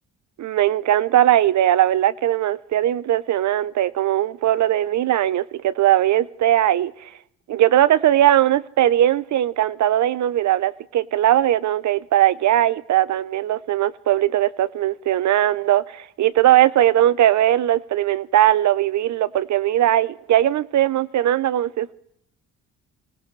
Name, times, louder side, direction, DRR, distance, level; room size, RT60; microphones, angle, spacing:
voice 1, 0.4-7.1 7.5-21.9, right 12 dB, 60° right, 0.6 m, -19 dB
23.5 x 17.0 x 3.2 m
supercardioid pair, 65°, 33 cm